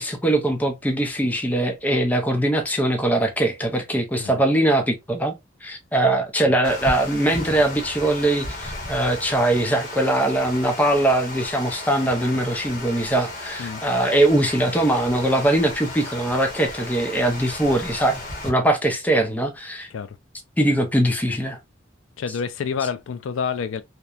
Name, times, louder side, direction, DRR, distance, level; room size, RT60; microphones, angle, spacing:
voice 1, 0.0-5.3 5.6-19.9 20.6-21.6, right 1 dB, 10° left, 0.5 m, -21 dB
Water, 6.6-18.5, left 2 dB, 45° left, 0.9 m, -35 dB
voice 2, 22.2-23.8, left 6 dB, 80° left, 0.3 m, -28 dB
2.8 x 2.1 x 2.3 m
head